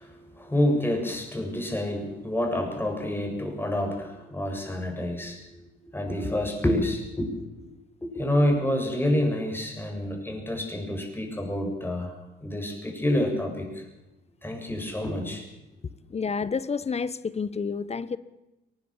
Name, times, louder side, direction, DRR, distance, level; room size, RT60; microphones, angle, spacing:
voice 1, 0.0-7.7 8.0-12.1 12.4-13.8 14.4-15.5, left 1 dB, 10° left, 7.4 m, -28 dB
voice 2, 16.1-18.2, left 5 dB, 30° left, 1.2 m, -29 dB
22.5 x 20.0 x 7.5 m
cardioid pair, 90°, 20 cm